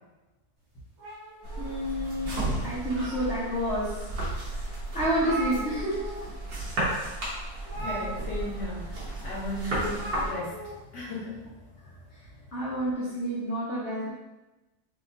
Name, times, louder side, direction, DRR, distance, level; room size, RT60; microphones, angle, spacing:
sound 1, 1.0-2.2 2.7-3.6 4.2-4.3 4.6-4.7 4.9-6.3 6.5-6.8 7.6-8.7 9.9-10.7, right 2 dB, 60° right, 2.2 m, -39 dB
sound 2, 1.4-10.3, right 1 dB, 75° right, 1.9 m, -33 dB
voice 1, 1.6-4.0 4.9-6.1 12.5-14.1, equal, 45° left, -7 dB, 1.2 m, -29 dB
voice 2, 7.8-10.6 10.9-11.4, left 1 dB, 75° left, -7 dB, 2.0 m, -35 dB
6.7 x 2.9 x 2.6 m, 1.1 s
omnidirectional pair, 1.8 m